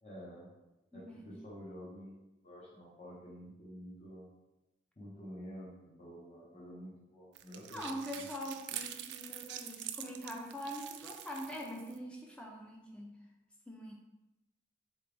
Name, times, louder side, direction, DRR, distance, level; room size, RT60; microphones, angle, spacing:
voice 1, 0.0-0.5 0.9-4.3 5.0-8.2, equal, 35° left, -7 dB, 0.9 m, -49 dB
voice 2, 0.9-1.3 7.7-13.1 13.7-13.9, equal, 5° left, -2 dB, 0.5 m, -43 dB
sound 1, 7.3-12.0, right 11 dB, 70° right, 0.3 m, -45 dB
3.9 x 3.2 x 3.4 m, 0.97 s
head